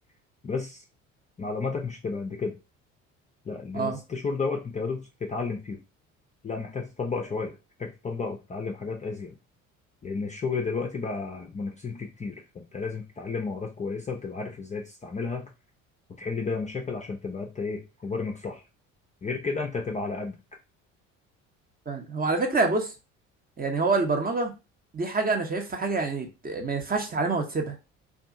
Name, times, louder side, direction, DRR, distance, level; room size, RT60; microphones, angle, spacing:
voice 1, 0.4-0.8 1.4-2.5 3.5-5.8 6.4-9.4 10.0-15.5 16.2-18.6 19.2-20.3, left 4 dB, 20° left, 0.5 m, -32 dB
voice 2, 21.9-22.9 23.6-24.5 24.9-27.7, right 3 dB, 25° right, 0.7 m, -26 dB
2.6 x 2.4 x 2.5 m
hypercardioid pair, 60°, 39 cm